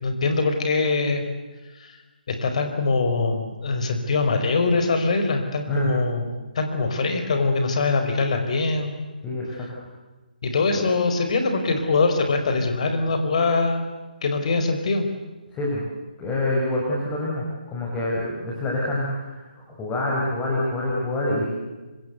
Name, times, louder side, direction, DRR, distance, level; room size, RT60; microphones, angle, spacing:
voice 1, 0.0-1.2 1.8-2.0 2.3-6.3 6.5-8.9 9.5-9.7 10.4-13.9 14.2-15.1, left 3 dB, 45° left, 6 dB, 4.7 m, -23 dB
voice 2, 9.2-9.7 10.7-10.8 15.5-15.8 16.2-21.4, left 1 dB, 15° left, -4 dB, 5.9 m, -26 dB
27.5 x 25.5 x 8.2 m, 1.2 s
figure-of-eight pair, 145°, 5 cm